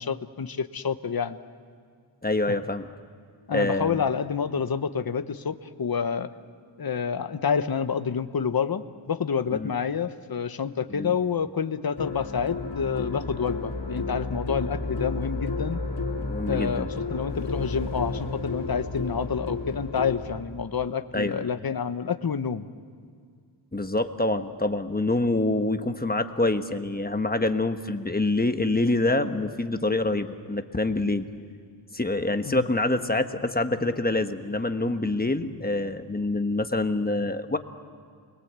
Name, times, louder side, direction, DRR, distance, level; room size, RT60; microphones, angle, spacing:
voice 1, 0.0-1.4 2.5-2.6 3.5-6.3 6.8-15.8 16.5-22.7 32.4-32.7, left 6 dB, 50° left, 10 dB, 1.0 m, -28 dB
voice 2, 2.2-2.9 3.5-4.0 9.5-9.7 10.9-11.1 16.2-16.9 21.1-21.5 23.7-31.3 31.9-37.6, left 2 dB, 20° left, 7 dB, 1.2 m, -26 dB
sound 1, 12.0-20.4, left 3 dB, 70° left, 3.4 m, -32 dB
29.5 x 22.0 x 8.2 m, 2.1 s
wide cardioid pair, 100°, 47 cm